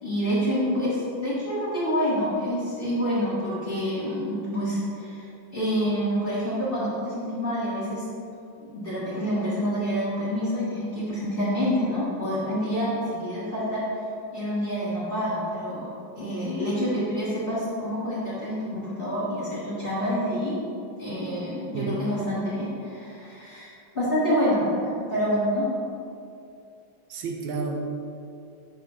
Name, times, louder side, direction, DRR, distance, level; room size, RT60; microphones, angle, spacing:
voice 1, 0.0-5.2 5.5-8.0 8.6-12.9 13.2-13.8 14.3-15.8 16.2-20.5 21.0-25.6, equal, 30° left, -10 dB, 1.7 m, -27 dB
voice 2, 27.1-27.9, right 4 dB, 90° right, 2 dB, 1.4 m, -30 dB
5.3 x 3.4 x 5.7 m, 2.6 s
omnidirectional pair, 2.0 m